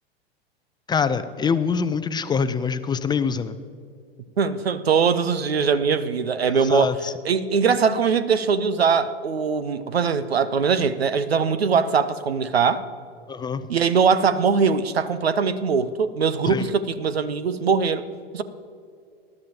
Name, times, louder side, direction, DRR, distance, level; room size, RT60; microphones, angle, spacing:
voice 1, 0.9-3.6 6.6-7.1 13.3-13.6 16.5-16.7, left 6 dB, 15° left, 0.5 m, -24 dB
voice 2, 4.4-6.9 7.2-12.8 13.7-18.0 18.3-18.4, right 6 dB, 90° right, 0.7 m, -21 dB
20.0 x 12.0 x 2.9 m
hypercardioid pair, 95°, 30 cm